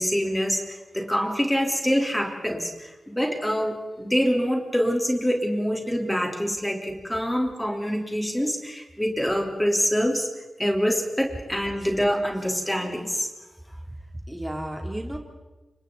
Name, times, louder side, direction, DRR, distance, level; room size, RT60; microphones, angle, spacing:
voice 1, 0.0-10.3 10.6-13.3, equal, 10° left, 0 dB, 3.9 m, -25 dB
voice 2, 13.9-15.2, right 1 dB, 10° right, 1 dB, 3.3 m, -33 dB
30.0 x 27.5 x 4.2 m, 1.1 s
wide cardioid pair, 80°, 0 cm